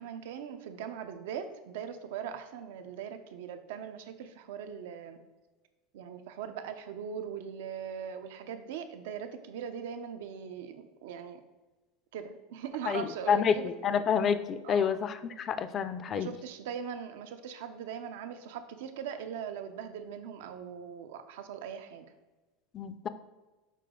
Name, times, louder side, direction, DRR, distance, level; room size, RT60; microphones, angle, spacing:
voice 1, 0.0-5.2 5.9-11.4 12.1-13.9 14.6-15.0 16.1-22.1, right 7 dB, 85° right, 8 dB, 0.7 m, -40 dB
voice 2, 12.9-16.3 22.7-23.1, left 7 dB, 25° left, 12 dB, 0.3 m, -29 dB
6.7 x 5.0 x 3.7 m, 1.2 s
supercardioid pair, 175°, 0 cm